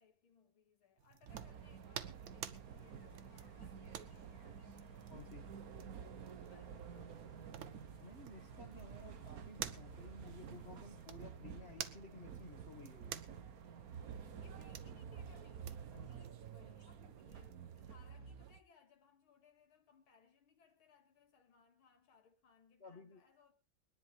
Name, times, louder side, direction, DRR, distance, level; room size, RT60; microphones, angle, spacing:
voice 1, 0.0-5.0 6.5-7.3 14.3-23.5, left 5 dB, 85° left, 2.8 m, -68 dB
sound 1, 1.0-18.0, right 10 dB, 75° right, 1.7 m, -53 dB
sound 2, 1.3-18.6, right 7 dB, 50° right, 1.3 m, -51 dB
sound 3, 2.5-11.1, left 5 dB, 60° left, 0.4 m, -65 dB
voice 2, 5.1-5.5 8.0-13.2 15.9-16.2 22.8-23.2, left 3 dB, 30° left, 2.1 m, -55 dB
24.0 x 10.5 x 3.3 m
omnidirectional pair, 2.2 m